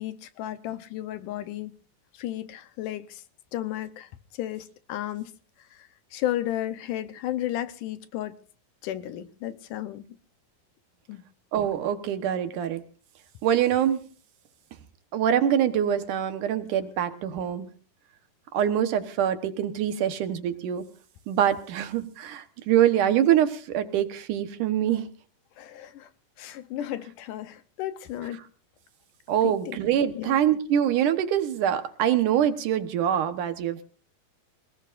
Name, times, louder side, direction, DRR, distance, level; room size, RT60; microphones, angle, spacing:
voice 1, 0.0-1.7 2.1-3.2 3.5-5.3 5.6-8.4 8.8-10.1 11.1-11.2 25.6-26.1 26.4-28.4 29.4-29.8 30.1-30.4, left 13 dB, 75° left, 2.4 m, -33 dB
voice 2, 11.5-12.8 13.4-14.0 15.1-17.7 18.5-20.8 21.3-25.1 29.3-33.8, right 10 dB, 75° right, 2.7 m, -24 dB
28.0 x 19.0 x 2.6 m
omnidirectional pair, 3.8 m